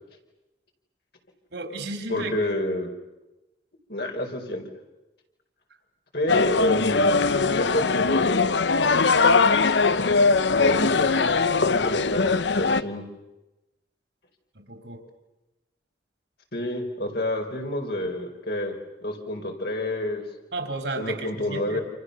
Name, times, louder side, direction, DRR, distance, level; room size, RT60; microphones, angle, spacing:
voice 1, 1.5-2.3 14.6-15.0 20.5-21.8, right 2 dB, 75° right, 5 dB, 4.3 m, -33 dB
voice 2, 2.1-2.9 3.9-4.6 6.1-8.4 10.5-13.0 16.5-18.7 19.0-20.2 21.0-21.8, left 1 dB, 60° left, 2 dB, 4.8 m, -29 dB
sound 1, 6.3-12.8, left 4 dB, 80° left, 0.8 m, -21 dB
29.0 x 28.0 x 6.9 m, 1.0 s
head